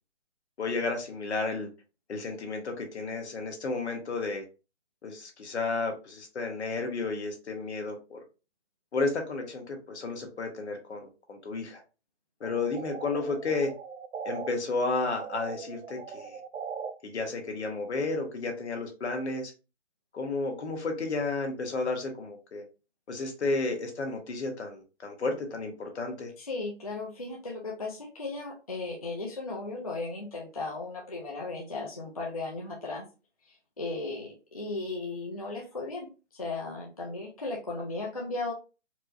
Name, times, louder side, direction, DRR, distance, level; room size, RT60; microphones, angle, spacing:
voice 1, 0.6-1.7 2.1-4.4 5.0-8.2 8.9-11.8 12.4-13.7 14.2-16.4 17.0-19.5 20.1-22.6 23.1-26.3, left 3 dB, 65° left, 1.2 m, -32 dB
sound 1, 12.4-14.5 14.8-16.9, right 6 dB, 75° right, 0.7 m, -40 dB
voice 2, 26.4-33.1 33.4-38.5, left 3 dB, 30° left, 0.4 m, -36 dB
4.4 x 2.0 x 2.5 m
hypercardioid pair, 170°, 36 cm